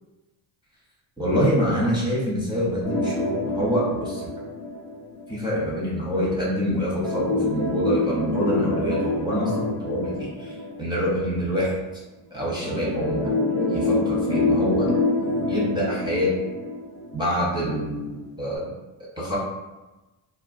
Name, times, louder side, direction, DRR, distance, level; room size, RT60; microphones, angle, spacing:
voice 1, 1.2-4.3 5.3-11.8 12.3-13.3 13.7-14.9 15.3-16.4 17.1-18.7 19.2-19.4, equal, 10° right, -6 dB, 0.6 m, -26 dB
sound 1, 2.8-5.5 7.0-11.3 12.6-17.5 17.8-17.9 18.5-18.6, left 2 dB, 45° left, 0.9 m, -26 dB
2.4 x 2.2 x 2.3 m, 1.1 s
cardioid pair, 75°, 46 cm